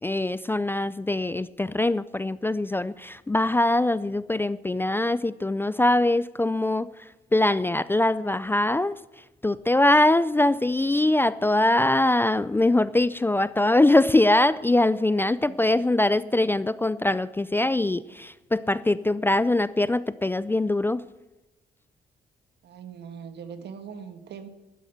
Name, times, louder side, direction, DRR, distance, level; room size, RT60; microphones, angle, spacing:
voice 1, 0.0-21.1, left 2 dB, 10° left, 17 dB, 0.4 m, -23 dB
voice 2, 15.3-15.8 22.6-24.5, right 7 dB, 75° right, 9 dB, 1.6 m, -41 dB
12.5 x 9.9 x 7.9 m, 1.0 s
cardioid pair, 105°, 18 cm